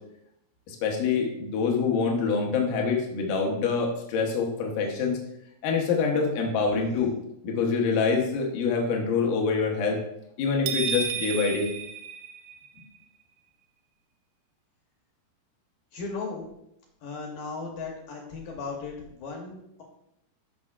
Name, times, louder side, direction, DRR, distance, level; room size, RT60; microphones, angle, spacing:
voice 1, 0.7-5.2 5.6-7.1 7.4-10.0 10.4-11.7, left 5 dB, 90° left, 1 dB, 1.8 m, -25 dB
sound 1, 10.7-12.8, right 6 dB, 85° right, 3.0 m, -32 dB
voice 2, 15.9-16.5 17.0-19.8, left 4 dB, 75° left, 0 dB, 2.1 m, -36 dB
13.0 x 5.3 x 2.4 m, 0.78 s
omnidirectional pair, 5.3 m